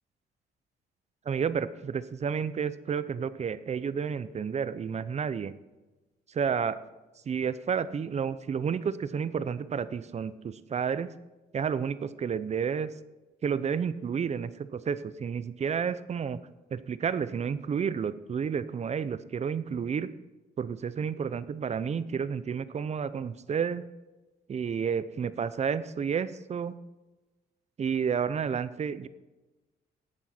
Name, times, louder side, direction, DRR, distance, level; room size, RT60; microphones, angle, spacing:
voice 1, 1.2-5.5 6.3-6.8 7.3-11.1 11.5-12.9 13.4-16.4 16.7-20.1 20.6-23.8 24.5-26.8 27.8-29.1, right 7 dB, 40° right, 15 dB, 0.7 m, -31 dB
13.5 x 8.9 x 4.4 m, 1.1 s
cardioid pair, 85°, 17 cm